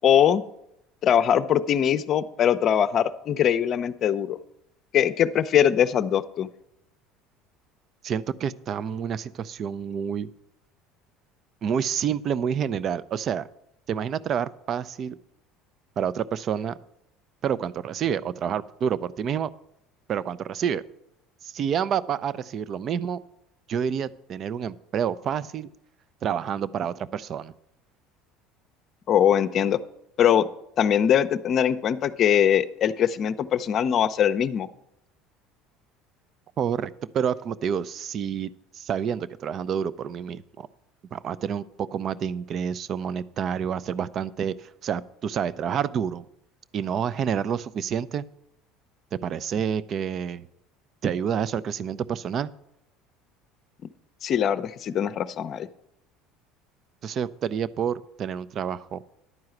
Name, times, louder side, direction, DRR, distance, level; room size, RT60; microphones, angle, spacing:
voice 1, 0.0-0.4 1.0-4.4 4.9-6.5 29.1-29.8 30.2-30.5 30.8-34.7 54.2-55.7, left 9 dB, 50° left, 13 dB, 0.6 m, -22 dB
voice 2, 8.0-10.3 11.6-13.5 13.9-15.2 16.0-16.8 17.4-19.5 20.1-20.8 21.4-23.2 23.7-25.7 26.2-27.5 36.6-40.7 41.1-46.3 46.7-48.2 49.1-50.5 51.0-52.5 57.0-59.1, right 8 dB, 45° right, 17 dB, 0.5 m, -28 dB
11.0 x 4.7 x 7.8 m, 0.79 s
supercardioid pair, 90°, 0 cm